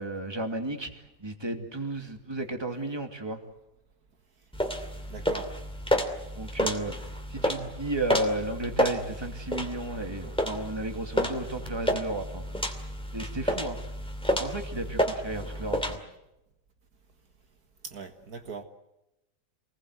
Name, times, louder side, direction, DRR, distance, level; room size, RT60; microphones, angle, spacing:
voice 1, 0.0-3.4 6.4-12.4 13.1-13.8 14.4-16.0, right 2 dB, 15° right, 2.5 m, -33 dB
sound 1, 4.5-16.0, equal, 5° left, 2.5 m, -30 dB
voice 2, 5.1-5.5 17.8-18.6, right 5 dB, 65° right, 2.0 m, -39 dB
28.0 x 20.5 x 8.0 m
omnidirectional pair, 1.7 m